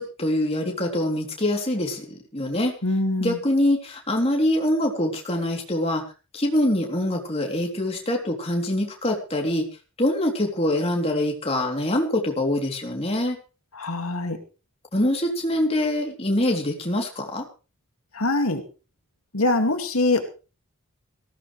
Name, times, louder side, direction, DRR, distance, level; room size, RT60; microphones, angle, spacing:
voice 1, 0.0-2.7 3.2-6.0 6.3-9.6 10.0-13.4 14.9-17.4, left 1 dB, 25° left, 1 dB, 3.4 m, -24 dB
voice 2, 2.8-3.4 13.7-14.4 18.1-18.6 19.3-20.2, left 2 dB, 80° left, 5 dB, 2.4 m, -23 dB
19.0 x 16.0 x 3.4 m, 0.34 s
head